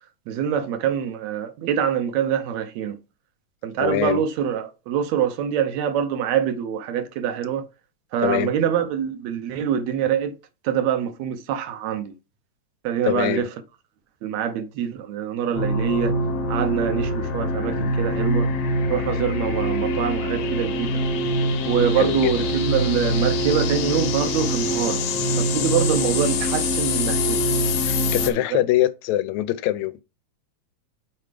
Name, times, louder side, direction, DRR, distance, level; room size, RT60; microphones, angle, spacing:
voice 1, 0.3-3.0 3.6-7.7 8.1-10.3 10.6-12.1 12.8-13.5 14.2-16.2 16.5-18.5 18.9-21.0 21.6-25.0 25.4-27.4 28.2-28.7, right 8 dB, 75° right, 2.0 m, -25 dB
voice 2, 3.8-4.2 8.2-8.5 13.1-13.5 22.0-22.3 27.8-30.0, left 14 dB, 80° left, 1.8 m, -23 dB
sound 1, 15.5-28.3, left 1 dB, 65° left, 1.7 m, -24 dB
5.9 x 4.5 x 5.0 m
omnidirectional pair, 3.4 m